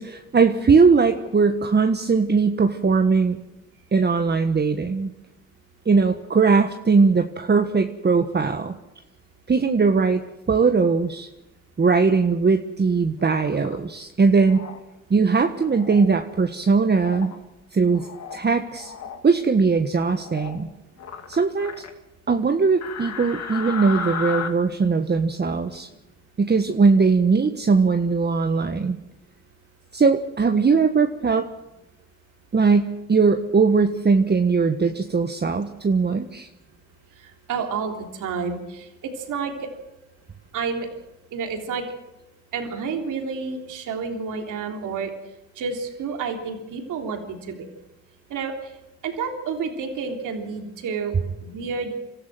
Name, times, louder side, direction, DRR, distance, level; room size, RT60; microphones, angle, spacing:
voice 1, 0.0-3.4 3.9-5.1 5.8-8.7 9.5-10.2 10.5-11.3 11.8-14.6 15.1-17.3 17.7-18.9 19.2-20.7 21.3-21.7 22.3-25.9 26.4-29.0 29.9-31.5 32.5-36.5, right 4 dB, 35° right, 6 dB, 1.4 m, -20 dB
sound 1, 13.2-13.8 14.5-14.8 15.5-16.1 17.0-17.4 17.8-18.4 18.7-19.2 20.2-20.6 21.0-21.9 22.8-24.5, left 6 dB, 55° left, 2.7 m, -34 dB
voice 2, 37.2-39.7 40.5-40.9 41.3-41.8 42.5-45.1 45.6-47.7 48.3-48.7 49.0-51.1 51.4-51.9, right 5 dB, 75° right, 3 dB, 3.4 m, -30 dB
26.0 x 13.5 x 7.7 m, 0.94 s
supercardioid pair, 65°, 31 cm